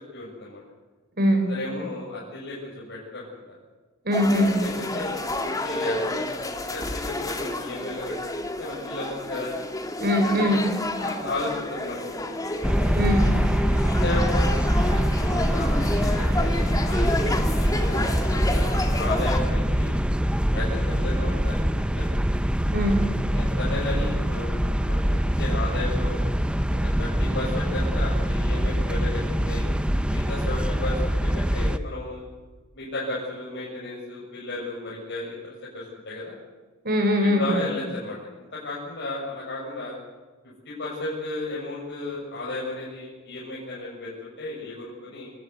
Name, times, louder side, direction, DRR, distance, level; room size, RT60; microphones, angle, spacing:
voice 1, 0.1-0.6 1.4-3.6 4.4-8.3 8.6-9.5 10.2-10.7 11.0-12.5 14.0-15.7 16.0-20.0 20.5-22.1 23.3-24.6 24.9-26.2 27.0-29.6 30.1-32.2 32.7-36.3 37.2-38.2 38.5-40.0 40.7-45.3, left 2 dB, 60° left, -6 dB, 6.9 m, -34 dB
voice 2, 4.0-4.6 10.0-10.7 13.0-13.3 22.7-23.0 36.8-37.5, equal, 50° right, 5 dB, 6.1 m, -21 dB
sound 1, 4.1-19.4, left 2 dB, 20° left, 2.0 m, -30 dB
sound 2, 12.6-31.8, equal, 5° right, 0.9 m, -24 dB
27.5 x 19.0 x 8.3 m, 1.3 s
head